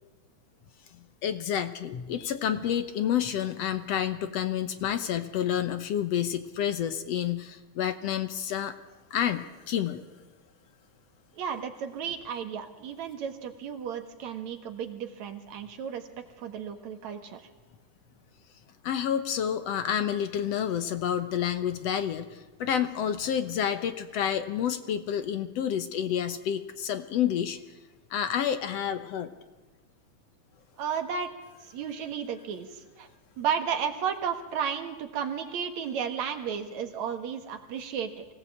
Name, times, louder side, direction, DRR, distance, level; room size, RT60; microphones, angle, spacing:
voice 1, 1.2-8.7 9.1-10.0 18.8-27.6 28.1-29.3, left 9 dB, 65° left, 10 dB, 1.9 m, -29 dB
voice 2, 11.4-16.1 16.4-17.4 30.8-31.3 31.6-33.1 33.4-38.3, right 7 dB, 70° right, 6 dB, 2.8 m, -33 dB
24.0 x 17.5 x 8.5 m, 1.2 s
omnidirectional pair, 3.4 m